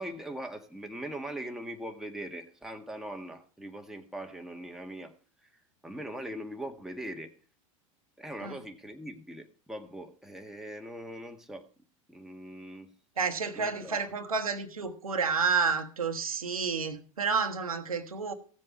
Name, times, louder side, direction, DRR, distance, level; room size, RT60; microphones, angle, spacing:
voice 1, 0.0-5.1 5.4-5.5 5.8-7.3 8.2-11.7 12.1-12.9 13.6-14.0, right 1 dB, ahead, 1.9 m, -41 dB
voice 2, 13.2-18.3, right 5 dB, 85° right, 1.4 m, -30 dB
16.5 x 7.5 x 4.7 m
hypercardioid pair, 85°, 18 cm